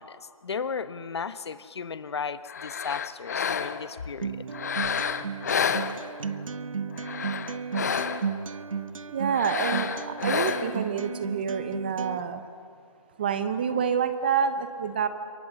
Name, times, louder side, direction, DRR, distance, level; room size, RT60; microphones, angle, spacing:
voice 1, 0.0-4.4, left 5 dB, 45° left, 13 dB, 1.0 m, -35 dB
sound 1, 2.5-4.0 4.5-6.4 6.9-8.4 9.3-10.9, left 7 dB, 30° left, 0.7 m, -30 dB
Acoustic guitar, 4.2-12.2, right 6 dB, 65° right, 0.8 m, -34 dB
voice 2, 9.1-12.4 13.2-15.1, right 7 dB, 15° right, 10 dB, 0.6 m, -27 dB
27.0 x 23.0 x 7.0 m, 2.4 s
figure-of-eight pair, 165°, 18 cm